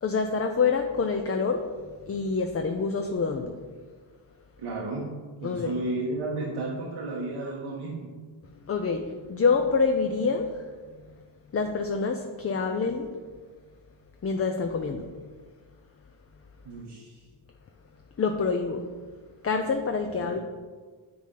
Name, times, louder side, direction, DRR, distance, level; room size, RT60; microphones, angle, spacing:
voice 1, 0.0-3.6 5.4-5.8 8.5-11.2 11.5-13.1 14.2-15.1 18.2-18.9 19.4-20.4, left 4 dB, 30° left, 5 dB, 0.5 m, -27 dB
voice 2, 4.6-5.1 5.4-8.1 16.6-17.2 20.2-20.4, right 2 dB, 85° right, -4 dB, 1.3 m, -33 dB
9.5 x 4.2 x 3.8 m, 1.5 s
cardioid pair, 90°, 49 cm